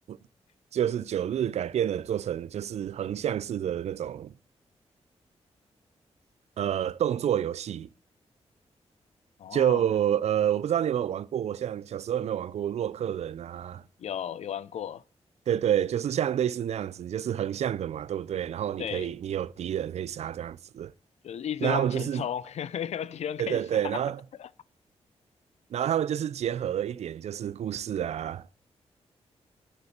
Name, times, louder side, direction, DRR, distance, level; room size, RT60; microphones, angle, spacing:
voice 1, 0.7-4.3 6.6-7.9 9.5-13.8 15.5-20.9 21.6-22.3 23.4-24.2 25.7-28.5, right 10 dB, 70° right, 0.4 m, -29 dB
voice 2, 9.4-9.8 14.0-15.0 18.8-19.1 21.2-24.0 24.4-24.5, left 9 dB, 75° left, 0.5 m, -34 dB
9.7 x 9.6 x 4.4 m
cardioid pair, 95°, 11 cm